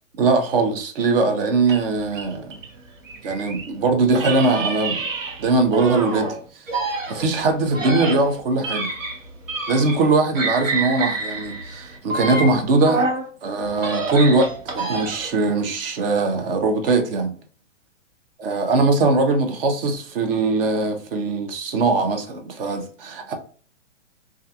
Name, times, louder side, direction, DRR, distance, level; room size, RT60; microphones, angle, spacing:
voice 1, 0.2-2.6 3.2-5.0 5.4-6.6 7.1-8.9 9.7-13.1 13.4-17.3 18.4-23.3, right 3 dB, 45° right, 0.7 m, -21 dB
sound 1, 1.6-3.7 4.1-6.3 6.7-10.1 10.3-13.3 13.7-15.4, right 3 dB, 85° right, 1.0 m, -28 dB
2.3 x 2.3 x 2.7 m
hypercardioid pair, 135°, 38 cm